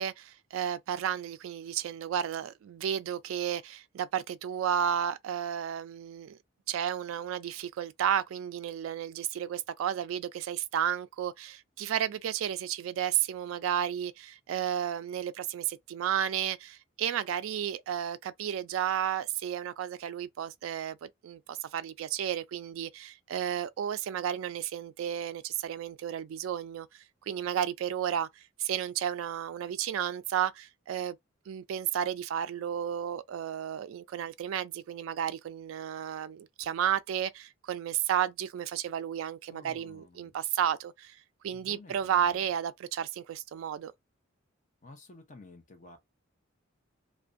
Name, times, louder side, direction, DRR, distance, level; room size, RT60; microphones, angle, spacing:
voice 1, 0.0-6.4 6.7-31.2 31.5-41.2 41.4-43.9, right 9 dB, 85° right, 0.3 m, -32 dB
voice 2, 39.5-40.3 41.5-42.5 44.8-46.0, left 2 dB, 40° left, 0.7 m, -52 dB
2.5 x 2.1 x 2.5 m
head